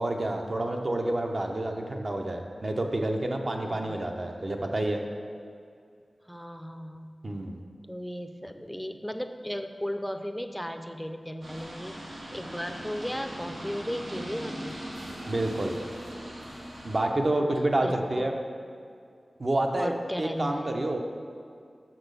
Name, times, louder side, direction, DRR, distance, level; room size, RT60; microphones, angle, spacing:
voice 1, 0.0-5.0 7.2-7.6 15.3-15.7 16.8-18.3 19.4-19.9 20.2-21.0, right 1 dB, 45° right, 3 dB, 0.8 m, -28 dB
voice 2, 3.6-4.0 6.3-7.2 7.9-14.8 17.3-17.5 17.8-18.3 19.7-20.7, equal, 5° left, 7 dB, 0.5 m, -36 dB
sound 1, 11.4-17.0, equal, 85° right, 1.9 m, -40 dB
6.6 x 6.0 x 6.7 m, 2.4 s
wide cardioid pair, 75°, 0 cm